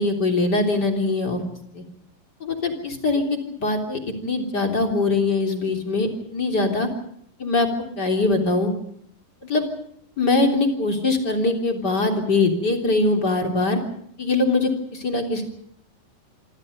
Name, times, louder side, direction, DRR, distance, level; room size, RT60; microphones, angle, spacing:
voice 1, 0.0-1.4 1.7-1.8 2.4-3.2 3.6-6.9 7.4-7.7 8.0-8.7 9.5-9.7 10.2-13.8 14.2-15.4, left 3 dB, 30° left, 3 dB, 3.7 m, -22 dB
26.5 x 26.5 x 5.3 m, 0.70 s
omnidirectional pair, 4.1 m